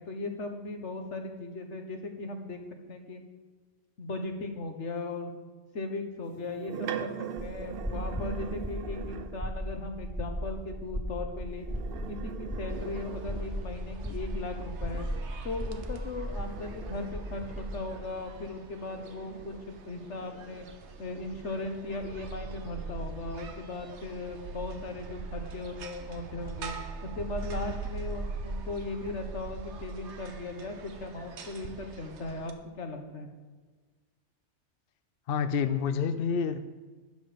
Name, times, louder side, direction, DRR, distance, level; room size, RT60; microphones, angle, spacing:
voice 1, 0.0-2.6 2.9-3.2 4.0-5.3 5.7-11.7 12.1-15.1 15.4-20.6 21.0-26.7 27.2-32.5 32.8-33.3, left 3 dB, 80° left, 4 dB, 1.7 m, -38 dB
sound 1, 6.3-9.6 11.5-13.9 15.8-21.0 21.6-23.3, right 9 dB, 60° right, 0.7 m, -43 dB
sound 2, 7.4-17.9, equal, 10° right, 0.8 m, -37 dB
sound 3, 12.7-32.5, right 3 dB, 80° right, 1.2 m, -42 dB
voice 2, 35.3-36.6, left 6 dB, 60° left, 10 dB, 0.8 m, -28 dB
12.5 x 9.5 x 5.2 m, 1.4 s
omnidirectional pair, 1.2 m